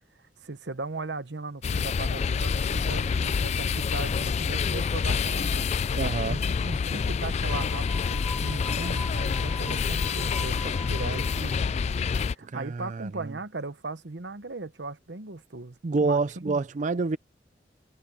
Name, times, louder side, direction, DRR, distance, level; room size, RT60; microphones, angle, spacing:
voice 1, 0.4-5.7 6.3-11.7 12.3-16.6, right 3 dB, 80° right, 1.1 m, -37 dB
sound 1, 1.6-12.4, left 5 dB, 40° left, 0.3 m, -27 dB
voice 2, 6.0-6.4 12.4-13.4 15.8-17.2, right 3 dB, 45° right, 0.4 m, -28 dB
sound 2, 7.4-11.7, left 1 dB, 5° left, 7.8 m, -43 dB
head